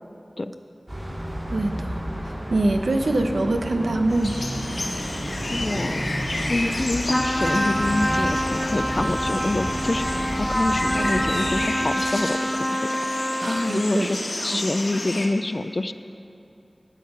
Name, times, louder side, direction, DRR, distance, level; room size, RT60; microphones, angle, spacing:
sound 1, 0.9-11.7, equal, 35° right, 3.3 m, -32 dB
voice 1, 1.5-4.4 10.9-11.3 13.4-14.1 14.4-14.6, right 2 dB, 80° right, 5 dB, 0.9 m, -25 dB
sound 2, 4.1-15.3, left 1 dB, 75° left, 1.5 m, -31 dB
voice 2, 5.5-6.0 6.5-12.4 12.9-14.2 14.4-15.9, left 2 dB, 50° left, 12 dB, 0.5 m, -26 dB
Trumpet, 7.1-13.8, equal, 10° left, 1.2 m, -26 dB
15.0 x 9.1 x 5.5 m, 2.7 s
wide cardioid pair, 50°, 0 cm